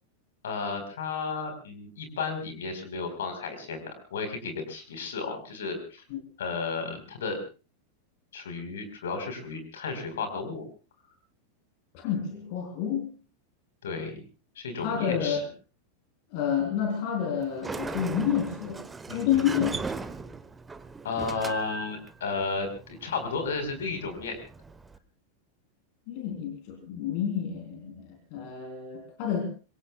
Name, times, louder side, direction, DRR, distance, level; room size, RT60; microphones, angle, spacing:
voice 1, 0.4-6.0 6.4-7.4 8.3-10.7 13.8-14.2 14.6-15.4 19.1-19.4 21.0-24.4, left 4 dB, 60° left, 7 dB, 4.5 m, -33 dB
voice 2, 12.0-13.1 14.8-15.5 16.3-18.8 19.1-19.8 26.1-29.5, left 8 dB, 45° left, 3 dB, 3.6 m, -29 dB
Sliding door, 17.4-25.0, right 4 dB, 10° right, 1.1 m, -39 dB
26.5 x 23.0 x 2.4 m, 0.33 s
figure-of-eight pair, 90°, 0 cm